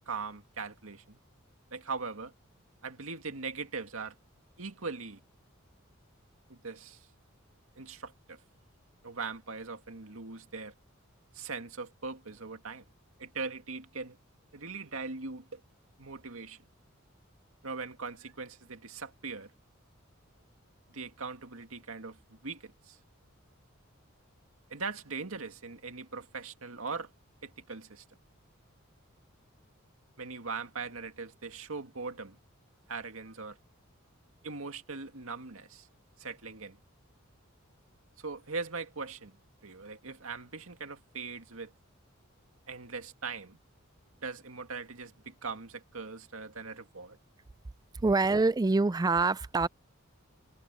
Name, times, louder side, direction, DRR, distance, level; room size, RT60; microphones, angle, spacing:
voice 1, 0.1-1.2 1.7-2.3 2.8-4.1 4.6-5.2 6.5-7.1 7.8-8.4 9.0-10.7 11.3-12.9 13.2-14.2 14.5-15.6 16.0-16.6 17.6-19.5 20.9-23.0 24.7-27.1 27.4-28.0 30.2-32.4 32.9-33.6 34.4-35.9 36.2-36.8 38.2-39.4 39.6-41.7 42.7-43.6 44.2-47.2, right 4 dB, 85° right, 2.1 m, -40 dB
voice 2, 48.0-49.7, right 3 dB, 20° right, 0.4 m, -25 dB
head